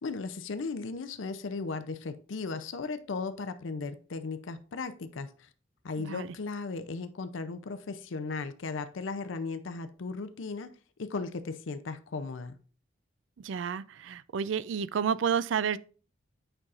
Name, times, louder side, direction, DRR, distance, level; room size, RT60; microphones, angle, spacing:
voice 1, 0.0-5.5 5.8-10.7 11.0-12.5, left 4 dB, 75° left, 0.5 m, -36 dB
voice 2, 6.0-6.3 13.4-15.8, right 7 dB, 70° right, 0.4 m, -30 dB
9.0 x 5.5 x 2.5 m
head